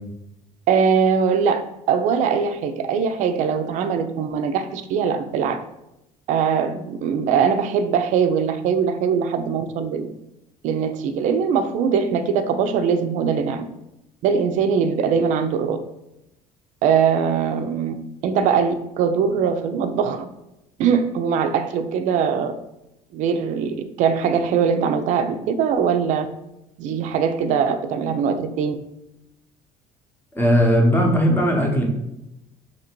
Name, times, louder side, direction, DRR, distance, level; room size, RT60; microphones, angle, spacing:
voice 1, 0.7-1.6 1.9-5.6 6.3-10.1 10.6-13.6 14.2-15.8 16.8-17.9 18.2-20.3 20.8-22.5 23.1-26.3 26.8-28.7, right 6 dB, 70° right, 9 dB, 0.4 m, -21 dB
voice 2, 30.3-31.8, equal, 15° left, 1 dB, 0.8 m, -18 dB
2.9 x 2.6 x 4.3 m, 0.88 s
cardioid pair, 105°, 13 cm